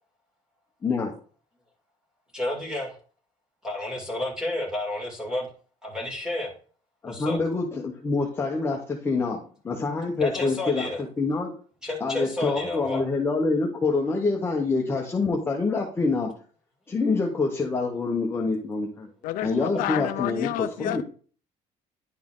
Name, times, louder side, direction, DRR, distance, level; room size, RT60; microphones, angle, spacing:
voice 1, 0.8-1.1 7.0-10.9 11.2-11.5 12.0-16.3 16.9-19.1 19.4-21.0, left 3 dB, 15° left, 0.9 m, -26 dB
voice 2, 2.3-3.0 3.6-5.5 5.8-6.5 7.1-7.4 10.2-11.0 11.8-13.1 19.5-20.1, left 1 dB, 5° right, 2.3 m, -31 dB
voice 3, 19.2-21.0, left 13 dB, 75° left, 0.5 m, -30 dB
10.5 x 4.2 x 3.7 m
cardioid pair, 165°, 14 cm